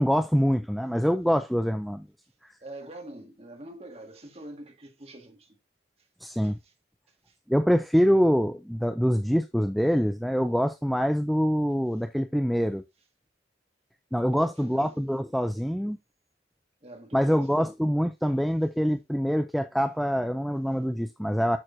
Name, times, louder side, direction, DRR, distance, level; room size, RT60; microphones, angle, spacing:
voice 1, 0.0-2.1 6.2-6.6 7.5-12.8 14.1-16.0 17.1-21.6, equal, ahead, 0.4 m, -25 dB
voice 2, 2.6-5.6 6.4-6.7 7.3-7.4 14.3-15.0 16.8-17.6, right 1 dB, 35° right, 1.8 m, -45 dB
8.8 x 6.4 x 2.6 m
head